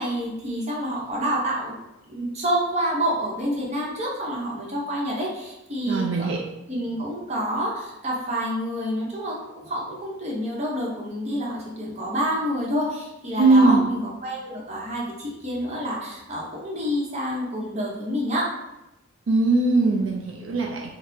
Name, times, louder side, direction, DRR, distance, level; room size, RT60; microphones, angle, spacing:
voice 1, 0.0-1.7 2.1-6.3 6.7-18.5, equal, 35° right, -3 dB, 0.8 m, -28 dB
voice 2, 5.9-6.4 13.4-13.9 19.3-20.9, right 3 dB, 70° right, -1 dB, 0.4 m, -20 dB
4.1 x 2.0 x 2.6 m, 0.92 s
head